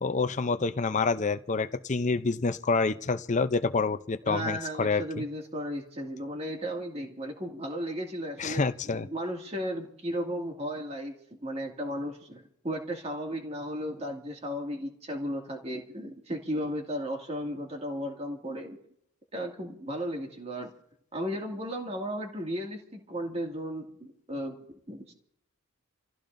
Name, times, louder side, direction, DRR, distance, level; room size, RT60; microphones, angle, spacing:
voice 1, 0.0-5.0 8.4-9.1, left 4 dB, 35° left, 0.6 m, -27 dB
voice 2, 4.3-8.6 8.9-11.1 11.4-18.8 19.3-20.7 21.1-25.1, equal, 30° right, 2.3 m, -35 dB
28.5 x 15.5 x 2.6 m
head